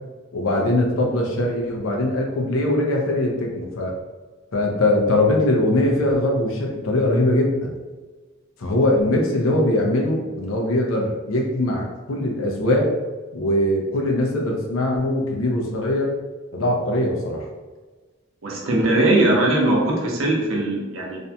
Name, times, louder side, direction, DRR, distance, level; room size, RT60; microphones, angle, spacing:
voice 1, 0.3-4.0 4.5-7.7 8.6-12.9 13.3-16.2 16.5-17.5, left 1 dB, 85° left, 0 dB, 0.6 m, -21 dB
voice 2, 18.4-21.2, right 1 dB, 75° right, -2 dB, 0.7 m, -20 dB
2.6 x 2.2 x 2.7 m, 1.3 s
head